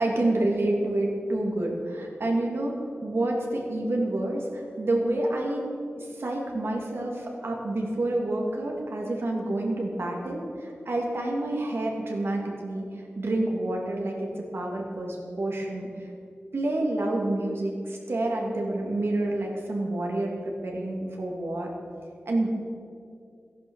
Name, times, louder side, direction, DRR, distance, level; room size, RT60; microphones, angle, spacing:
voice 1, 0.0-2.7 3.0-5.6 6.0-15.9 16.5-21.8 22.3-22.5, right 1 dB, 65° right, 0 dB, 2.9 m, -28 dB
14.5 x 11.0 x 7.3 m, 2.4 s
wide cardioid pair, 75°, 4 cm